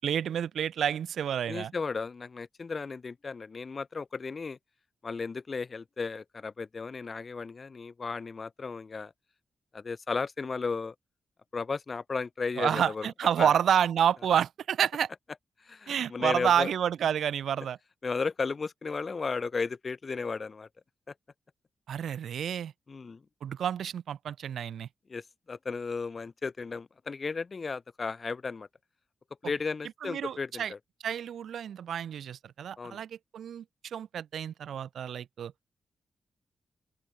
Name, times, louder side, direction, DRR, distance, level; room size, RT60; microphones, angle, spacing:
voice 1, 0.0-1.7 12.6-15.1 15.9-17.8 21.9-22.7 23.4-24.9 30.0-30.7 31.0-35.5, right 9 dB, 85° right, 1.0 m, -29 dB
voice 2, 1.5-4.6 5.0-9.1 9.7-11.0 11.5-13.1 13.4-13.5 15.6-16.7 18.0-20.7 22.9-23.2 25.1-28.7 29.4-30.8 32.8-33.0, left 4 dB, 35° left, 1.8 m, -34 dB
open air
wide cardioid pair, 155°, 0 cm